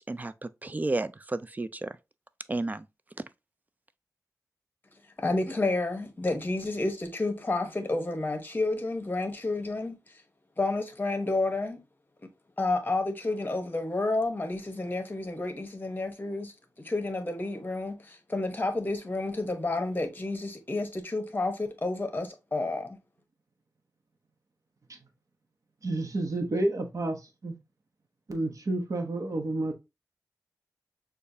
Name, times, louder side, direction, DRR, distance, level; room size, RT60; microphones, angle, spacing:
voice 1, 0.0-1.9 2.5-2.8, right 2 dB, 25° right, 0.3 m, -32 dB
voice 2, 5.2-10.0 10.6-11.8 12.6-16.5 16.8-23.0, left 2 dB, 30° left, 0.9 m, -30 dB
voice 3, 25.8-27.5 28.3-29.7, right 2 dB, 60° right, 1.0 m, -30 dB
6.5 x 2.4 x 2.7 m
wide cardioid pair, 95°, 6 cm